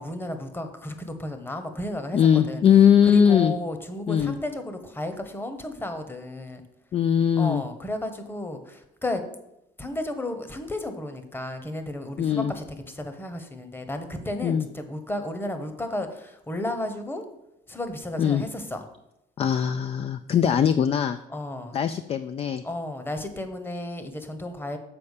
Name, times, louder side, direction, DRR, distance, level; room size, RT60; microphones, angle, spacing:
voice 1, 0.0-2.2 2.5-2.6 3.0-6.6 7.4-9.3 9.8-17.2 17.7-18.8 21.3-21.8 22.6-24.8, left 1 dB, 15° left, 8 dB, 1.0 m, -33 dB
voice 2, 2.1-3.5 4.1-4.3 6.9-7.6 12.2-12.5 14.4-14.7 18.2-18.4 19.4-21.2 21.7-22.6, left 8 dB, 35° left, 11 dB, 0.4 m, -20 dB
7.0 x 4.3 x 6.6 m, 0.85 s
cardioid pair, 110°, 17 cm